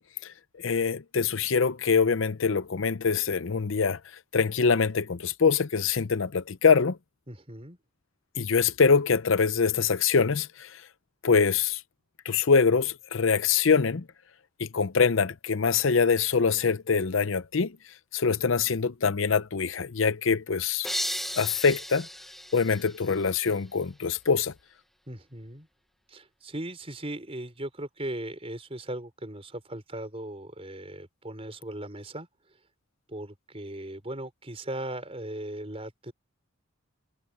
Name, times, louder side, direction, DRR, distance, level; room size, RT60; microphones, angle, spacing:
voice 1, 0.0-4.0 4.3-7.0 8.4-10.7 11.2-11.8 12.2-14.1 14.6-17.8 18.1-20.9 21.4-22.1 22.5-24.5, left 5 dB, 65° left, 0.7 m, -24 dB
voice 2, 7.3-7.8 25.1-25.7 26.1-32.3 33.1-36.1, right 1 dB, 30° right, 5.3 m, -38 dB
sound 1, 20.8-23.6, equal, ahead, 1.1 m, -35 dB
head